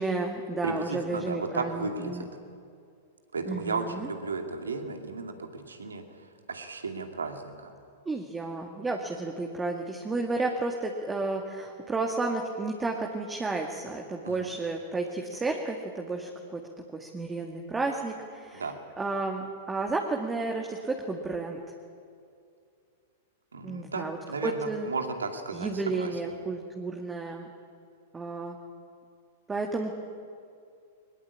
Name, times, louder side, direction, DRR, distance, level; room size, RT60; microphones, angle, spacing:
voice 1, 0.0-2.3 3.5-4.1 8.1-16.6 16.9-18.7 19.0-21.6 23.6-24.2 24.4-24.9 25.5-27.5 28.1-28.6 29.5-29.9, right 3 dB, 15° right, 2 dB, 2.0 m, -32 dB
voice 2, 0.6-2.3 3.3-6.0 6.5-7.7 14.2-14.5 18.5-18.7 23.5-26.1, right 3 dB, 85° right, 5 dB, 2.5 m, -34 dB
22.0 x 21.0 x 8.6 m, 2.4 s
hypercardioid pair, 105°, 0 cm